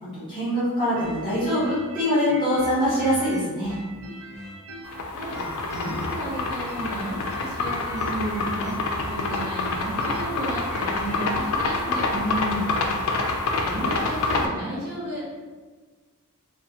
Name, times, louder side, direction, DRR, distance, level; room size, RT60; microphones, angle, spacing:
voice 1, 0.0-3.8 12.1-12.7, equal, 25° left, -9 dB, 0.9 m, -24 dB
sound 1, 0.9-5.0 5.3-11.3, equal, 75° right, 0.8 m, -40 dB
sound 2, 4.8-14.5, left 3 dB, 65° left, 0.3 m, -27 dB
voice 2, 5.7-8.7 9.0-12.1 13.7-15.2, right 1 dB, 50° right, -8 dB, 0.8 m, -33 dB
2.2 x 2.1 x 2.7 m, 1.4 s
head